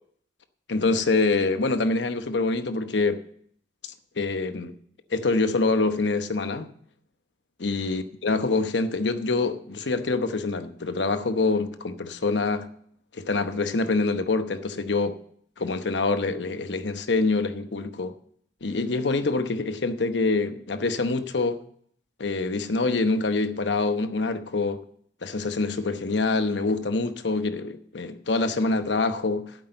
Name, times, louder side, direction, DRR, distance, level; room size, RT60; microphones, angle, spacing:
voice 1, 0.7-3.2 4.2-4.7 5.1-6.7 7.6-12.7 13.1-15.2 15.6-18.1 18.6-21.6 22.2-24.8 25.2-29.5, left 3 dB, 85° left, 0.9 m, -25 dB
8.6 x 7.9 x 8.6 m
head